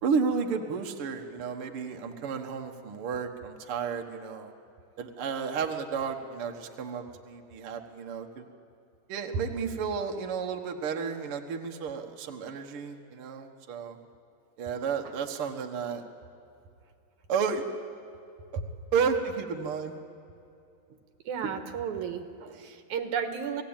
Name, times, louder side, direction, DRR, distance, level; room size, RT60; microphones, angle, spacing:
voice 1, 0.0-4.5 5.0-8.4 9.1-14.0 14.6-16.0 17.3-17.6 18.5-18.6 18.9-19.9, right 6 dB, 55° right, 3 dB, 1.9 m, -32 dB
voice 2, 21.3-23.6, right 7 dB, 70° right, 7 dB, 2.7 m, -33 dB
28.0 x 17.5 x 8.9 m, 2.6 s
omnidirectional pair, 3.6 m